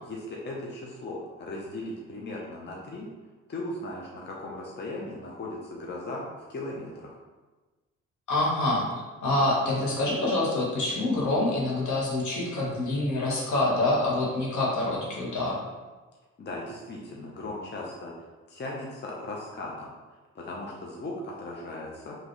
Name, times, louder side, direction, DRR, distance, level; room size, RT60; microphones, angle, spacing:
voice 1, 0.1-3.1 3.5-6.2 6.5-7.2 16.4-18.1 18.5-22.2, left 2 dB, 35° left, -3 dB, 0.8 m, -37 dB
voice 2, 8.3-15.6, left 2 dB, 75° left, -4 dB, 1.5 m, -26 dB
5.1 x 3.0 x 3.1 m, 1.3 s
cardioid pair, 90°, 30 cm